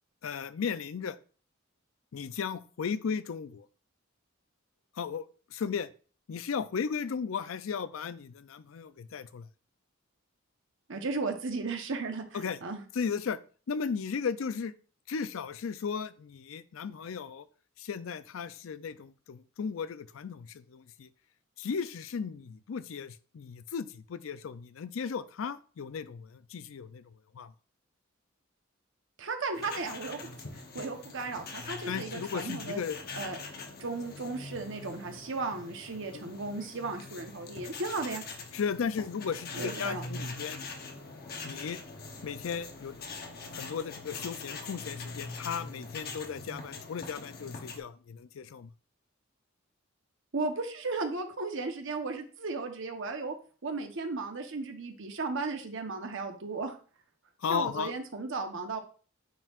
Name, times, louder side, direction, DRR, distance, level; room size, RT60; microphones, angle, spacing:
voice 1, 0.2-1.2 2.1-3.7 5.0-5.2 5.5-5.9 6.3-9.5 12.3-12.6 13.0-13.4 13.7-14.7 15.1-17.4 17.8-21.1 21.6-27.0 27.3-27.5 31.9-33.0 36.1-36.3 38.5-40.6 41.4-41.8 42.2-42.9 43.5-48.7 57.4-57.9, left 6 dB, 75° left, 14 dB, 0.4 m, -35 dB
voice 2, 10.9-12.8 29.2-30.3 30.7-32.8 33.1-33.4 33.8-38.2 39.5-40.0 50.3-53.3 53.6-56.8 57.5-58.8, right 3 dB, 65° right, 5 dB, 1.0 m, -35 dB
sound 1, 29.5-47.8, left 3 dB, 50° left, 1.0 m, -43 dB
9.1 x 4.6 x 2.5 m, 0.40 s
head